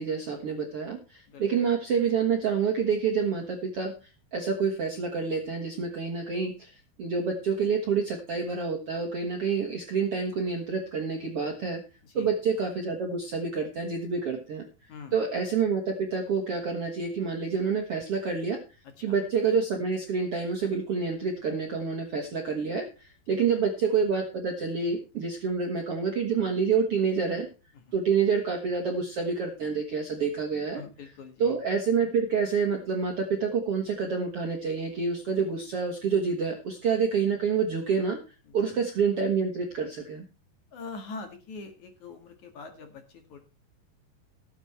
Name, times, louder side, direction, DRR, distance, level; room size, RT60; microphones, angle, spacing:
voice 1, 0.0-11.8 12.1-18.6 19.0-27.5 27.9-30.8 31.4-38.2 38.5-40.2, right 5 dB, 55° right, 2 dB, 1.7 m, -28 dB
voice 2, 30.7-31.5 38.5-38.8 40.7-43.4, left 4 dB, 55° left, 6 dB, 2.9 m, -43 dB
17.5 x 7.3 x 4.4 m, 0.32 s
omnidirectional pair, 4.6 m